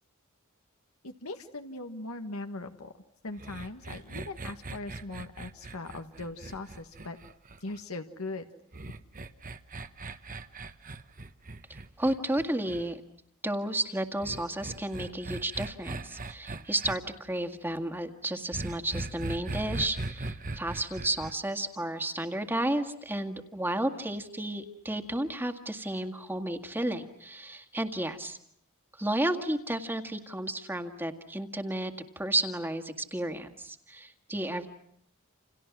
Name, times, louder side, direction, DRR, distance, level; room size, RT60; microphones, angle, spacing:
voice 1, 1.0-2.9 3.2-7.2 7.6-8.5, left 2 dB, 90° left, 6 dB, 1.6 m, -40 dB
sound 1, 3.4-7.8 8.7-12.9 14.2-17.0 18.5-21.3, right 2 dB, 40° right, 1.2 m, -39 dB
voice 2, 12.0-13.0 13.4-28.4 29.0-34.7, right 1 dB, 10° right, 7 dB, 1.9 m, -32 dB
29.5 x 28.5 x 6.1 m, 0.68 s
head